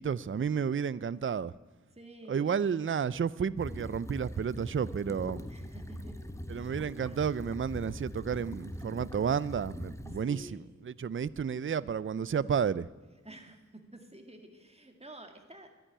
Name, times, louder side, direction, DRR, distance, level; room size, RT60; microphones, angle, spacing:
voice 1, 0.0-1.5 2.3-5.5 6.5-12.9, right 7 dB, 45° right, 18 dB, 0.4 m, -31 dB
voice 2, 1.9-2.6 5.5-6.2 6.5-7.2 10.2-10.6 13.2-15.7, right 1 dB, 20° right, 4 dB, 2.0 m, -51 dB
sound 1, 3.6-10.2, equal, 10° left, 0.9 m, -42 dB
11.5 x 10.0 x 9.9 m, 1.2 s
wide cardioid pair, 60°, 30 cm